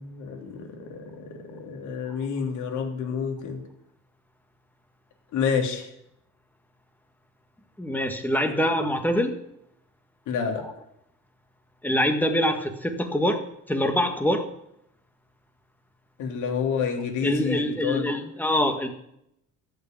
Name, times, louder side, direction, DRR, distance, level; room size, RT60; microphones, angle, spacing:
voice 1, 0.0-3.6 5.3-5.9 10.3-10.6 16.2-18.1, left 6 dB, 80° left, 2 dB, 3.4 m, -29 dB
voice 2, 7.8-9.4 11.8-13.4 13.7-14.5 17.2-18.9, equal, 5° left, 5 dB, 1.7 m, -24 dB
15.0 x 6.9 x 9.0 m, 0.77 s
cardioid pair, 125°, 30 cm